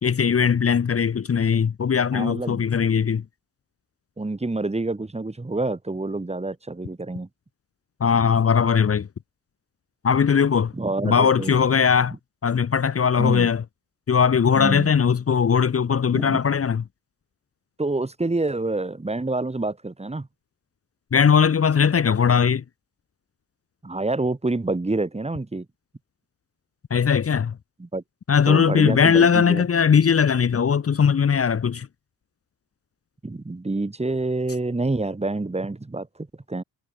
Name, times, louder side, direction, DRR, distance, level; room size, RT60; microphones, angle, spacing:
voice 1, 0.0-3.2 8.0-9.1 10.0-10.7 11.0-12.2 12.4-13.6 14.1-16.8 21.1-22.6 26.9-27.5 28.3-31.9, left 7 dB, 35° left, 1.4 m, -19 dB
voice 2, 2.1-2.6 4.2-7.3 10.7-11.6 13.2-13.5 14.5-14.9 16.1-16.4 17.8-20.3 23.8-25.7 27.8-28.0 28.5-29.6 33.2-36.1 36.5-36.6, right 2 dB, 15° right, 2.9 m, -27 dB
hypercardioid pair, 55°, 38 cm